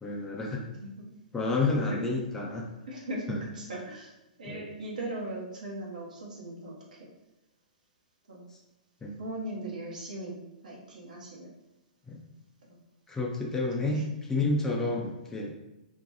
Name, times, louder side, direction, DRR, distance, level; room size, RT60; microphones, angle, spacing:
voice 1, 0.0-0.6 1.3-2.7 3.3-3.4 4.4-4.6 8.5-8.6 9.0-9.2 12.1-12.2 13.1-15.5, left 2 dB, 10° left, -2 dB, 0.4 m, -30 dB
voice 2, 2.9-4.1 4.4-7.0 8.3-8.5 9.2-11.5 12.6-12.8 13.8-14.0 14.9-15.1, right 1 dB, 65° right, -3 dB, 0.8 m, -39 dB
2.6 x 2.1 x 2.8 m, 0.97 s
figure-of-eight pair, 115°, 5 cm